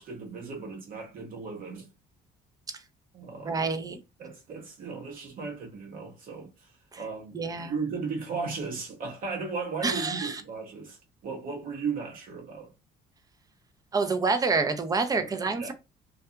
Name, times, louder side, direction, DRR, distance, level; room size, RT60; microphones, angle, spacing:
voice 1, 0.0-1.9 3.1-3.6 4.2-6.7 7.0-12.7 15.1-15.7, right 4 dB, 55° right, 0.8 m, -36 dB
voice 2, 3.4-4.0 6.9-7.0 7.3-7.8 9.8-10.4 13.9-15.7, right 4 dB, 20° right, 0.5 m, -28 dB
2.7 x 2.3 x 2.2 m
cardioid pair, 110°, 17 cm